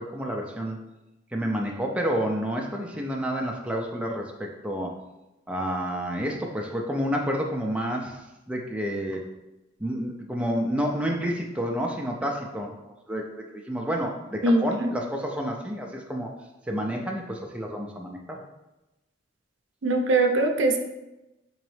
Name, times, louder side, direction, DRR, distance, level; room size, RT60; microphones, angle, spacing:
voice 1, 0.1-0.8 1.3-4.9 5.5-9.3 9.8-12.8 13.1-13.2 13.5-16.3 16.7-18.4, equal, 5° right, 0 dB, 0.3 m, -29 dB
voice 2, 14.4-14.9 19.8-20.8, right 2 dB, 70° right, 4 dB, 0.5 m, -22 dB
3.7 x 3.0 x 3.1 m, 0.98 s
head